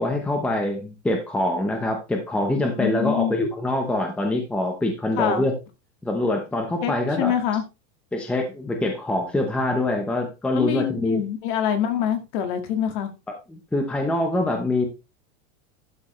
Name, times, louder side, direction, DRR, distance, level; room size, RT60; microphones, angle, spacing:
voice 1, 0.0-5.5 6.0-7.3 8.1-11.2 13.5-14.9, left 1 dB, 5° left, 0.8 m, -24 dB
voice 2, 2.8-3.4 5.2-5.5 6.8-7.6 10.5-13.1, left 9 dB, 45° left, 1.9 m, -25 dB
12.0 x 6.1 x 3.1 m
supercardioid pair, 180°, 35 cm